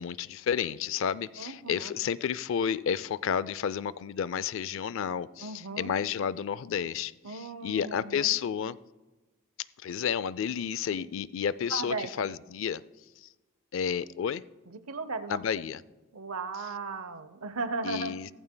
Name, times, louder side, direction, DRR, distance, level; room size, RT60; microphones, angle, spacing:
voice 1, 0.0-5.5 5.8-8.8 9.8-12.8 13.2-13.3 13.7-14.4 15.3-15.8 17.8-18.3, left 7 dB, 65° left, 18 dB, 0.4 m, -31 dB
voice 2, 1.4-1.9 5.4-5.9 7.2-8.3 10.9-11.1 11.7-12.4 14.7-15.4 16.1-18.2, right 3 dB, 90° right, 12 dB, 0.7 m, -36 dB
16.0 x 14.5 x 2.2 m, 1.1 s
head